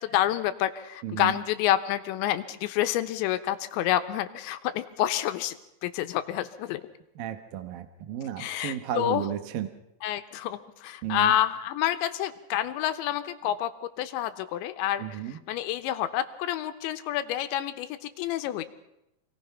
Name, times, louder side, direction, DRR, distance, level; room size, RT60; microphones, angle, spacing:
voice 1, 0.0-5.6 5.8-6.8 8.4-9.3 10.0-18.6, left 12 dB, 90° left, 10 dB, 3.3 m, -28 dB
voice 2, 7.2-9.7 11.0-11.4 15.0-15.4, right 11 dB, 65° right, 8 dB, 2.5 m, -33 dB
27.0 x 18.5 x 5.7 m, 0.86 s
omnidirectional pair, 5.1 m